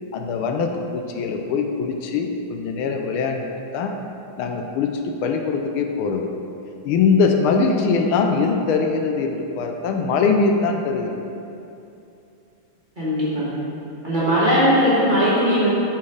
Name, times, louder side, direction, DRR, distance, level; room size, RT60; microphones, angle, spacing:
voice 1, 0.1-3.5 3.7-3.9 4.4-6.3 6.8-11.3, left 4 dB, 80° left, 4 dB, 1.4 m, -22 dB
voice 2, 13.0-13.6 14.0-15.7, equal, 25° right, -10 dB, 1.3 m, -19 dB
7.1 x 4.5 x 4.8 m, 2.8 s
omnidirectional pair, 2.4 m